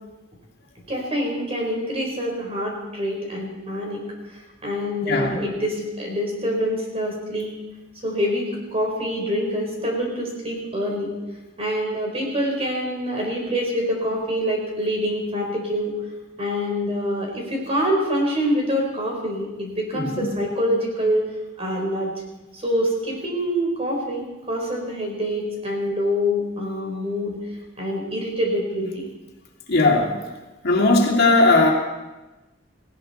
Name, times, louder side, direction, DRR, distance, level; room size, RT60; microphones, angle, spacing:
voice 1, 0.9-4.0 4.6-7.5 8.0-11.1 11.6-15.9 16.4-21.3 21.6-22.1 22.5-27.4 27.8-29.0, equal, 30° right, 0 dB, 4.6 m, -25 dB
voice 2, 5.1-5.4 19.9-20.3 29.7-30.2 30.6-31.7, left 2 dB, 60° left, 0 dB, 2.7 m, -18 dB
19.0 x 16.5 x 4.4 m, 1.1 s
head